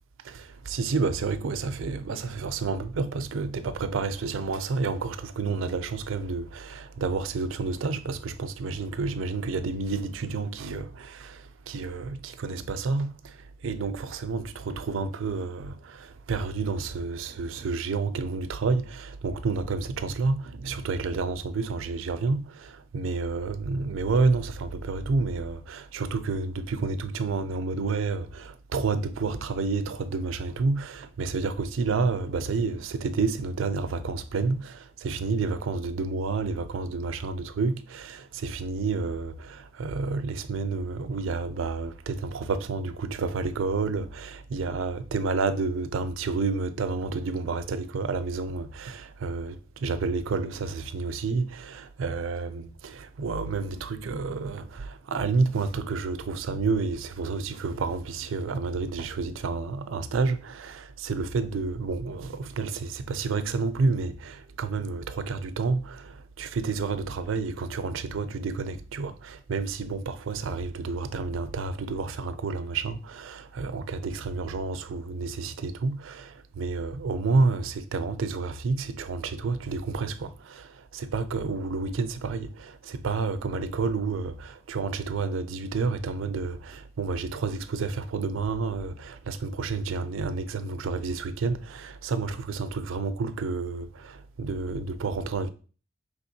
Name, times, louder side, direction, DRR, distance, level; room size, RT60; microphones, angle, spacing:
voice 1, 0.2-13.1 13.6-80.7 80.9-95.5, right 4 dB, 80° right, 0.4 m, -30 dB
5.0 x 3.5 x 2.7 m
head